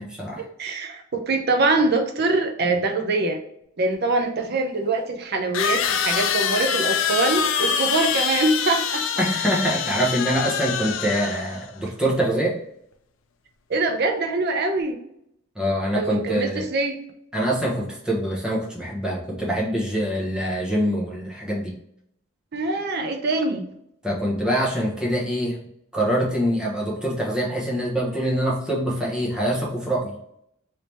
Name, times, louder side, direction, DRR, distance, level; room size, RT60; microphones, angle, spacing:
voice 1, 0.0-0.5 9.2-12.6 15.6-16.7 17.3-21.8 24.0-25.6 25.9-30.2, equal, 5° right, -4 dB, 0.8 m, -24 dB
voice 2, 0.6-3.4 3.8-9.0 13.7-15.0 16.0-17.0 22.5-23.6, right 3 dB, 50° right, 3 dB, 0.6 m, -23 dB
sound 1, 3.9-4.0 5.5-11.7, left 7 dB, 65° left, 0.4 m, -25 dB
3.3 x 2.8 x 3.0 m, 0.75 s
head